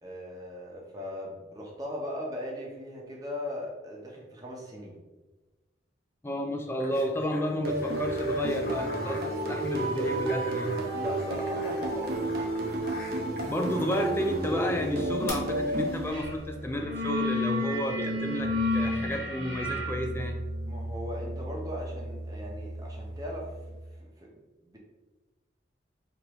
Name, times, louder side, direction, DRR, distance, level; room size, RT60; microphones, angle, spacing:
voice 1, 0.0-5.0 10.9-12.3 20.6-24.8, left 1 dB, 20° right, -3 dB, 0.8 m, -39 dB
voice 2, 6.2-10.7 13.3-20.4, equal, 15° left, 3 dB, 0.3 m, -31 dB
sound 1, 6.8-14.5 15.3-15.4, left 2 dB, 55° left, 0.9 m, -46 dB
sound 2, 7.6-16.6, right 1 dB, 55° right, 0.6 m, -31 dB
sound 3, 16.1-16.4 16.6-23.3, left 1 dB, 85° right, 1.0 m, -32 dB
4.6 x 2.6 x 3.0 m, 1.2 s
head